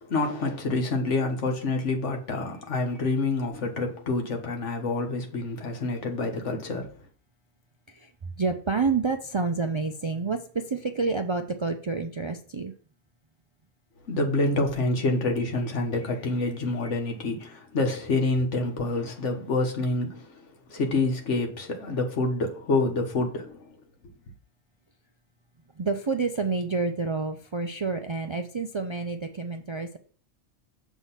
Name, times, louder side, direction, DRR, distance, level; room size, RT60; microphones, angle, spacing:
voice 1, 0.0-6.9 14.1-20.4 20.7-23.7, left 2 dB, 85° left, 1.6 m, -27 dB
voice 2, 7.9-12.7 25.8-30.0, right 4 dB, 50° right, 0.3 m, -29 dB
7.3 x 3.5 x 5.7 m
omnidirectional pair, 1.2 m